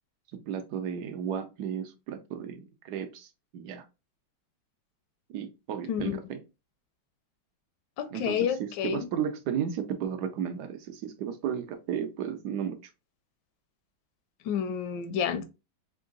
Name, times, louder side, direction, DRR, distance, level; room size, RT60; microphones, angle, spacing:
voice 1, 0.3-3.9 5.3-6.4 8.1-12.9, right 8 dB, 75° right, 0.9 m, -34 dB
voice 2, 5.9-6.2 8.0-9.1 14.4-15.5, left 8 dB, 75° left, 1.1 m, -29 dB
3.7 x 2.5 x 3.7 m
omnidirectional pair, 2.3 m